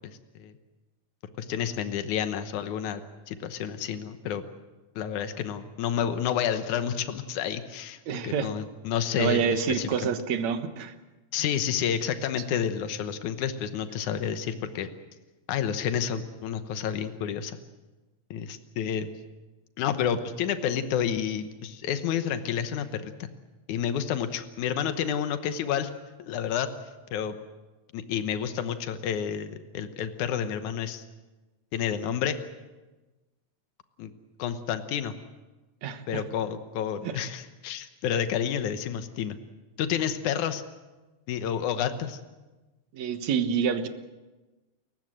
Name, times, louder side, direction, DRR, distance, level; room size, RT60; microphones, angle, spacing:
voice 1, 0.0-0.5 1.4-3.0 3.3-4.4 5.0-10.1 11.3-14.9 15.5-17.6 18.3-19.1 19.8-23.3 23.7-25.9 26.2-26.7 27.1-27.4 27.9-31.0 31.7-32.4 34.0-34.1 34.4-35.1 36.1-39.4 39.8-40.6 41.3-42.2, left 8 dB, 80° left, 9 dB, 2.6 m, -30 dB
voice 2, 8.1-8.5 9.2-10.9 35.8-36.2 37.0-37.1 42.9-43.9, right 7 dB, 70° right, 9 dB, 2.6 m, -27 dB
29.5 x 15.5 x 7.7 m, 1.2 s
omnidirectional pair, 3.4 m